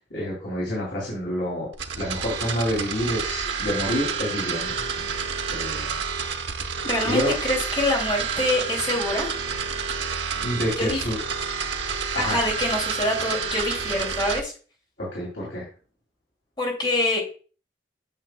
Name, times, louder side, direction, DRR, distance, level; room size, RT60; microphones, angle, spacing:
voice 1, 0.1-1.7 1.9-5.1 5.5-6.0 7.0-7.3 10.3-11.2 11.8-12.4 15.0-15.7, equal, 85° left, -4 dB, 2.8 m, -28 dB
sound 1, 1.7-14.4, right 6 dB, 90° right, 0.8 m, -29 dB
voice 2, 6.8-9.3 10.8-11.0 12.2-14.5 16.6-17.2, left 1 dB, 25° left, 0 dB, 2.4 m, -25 dB
8.7 x 6.4 x 2.2 m, 0.38 s
head